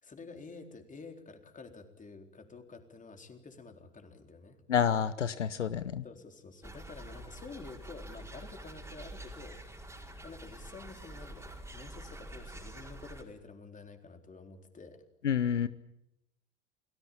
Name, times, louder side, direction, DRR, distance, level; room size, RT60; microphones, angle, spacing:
voice 1, 0.0-4.6 6.0-15.0, left 4 dB, 20° left, 6 dB, 4.0 m, -49 dB
voice 2, 4.7-6.0 15.2-15.7, left 8 dB, 85° left, 15 dB, 0.9 m, -29 dB
sound 1, 6.6-13.2, right 1 dB, 5° right, 4.9 m, -47 dB
29.5 x 19.0 x 8.7 m, 0.84 s
figure-of-eight pair, 75°, 35 cm